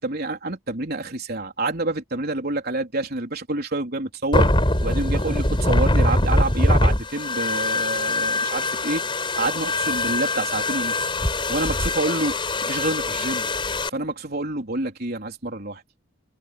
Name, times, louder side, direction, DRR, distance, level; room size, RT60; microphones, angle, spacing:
voice 1, 0.0-4.5 4.8-9.0 9.4-11.1 11.5-12.4 12.6-13.5 13.9-15.8, right 2 dB, 50° right, 3.9 m, -27 dB
sound 1, 4.3-13.9, left 1 dB, 25° left, 4.8 m, -23 dB
open air
head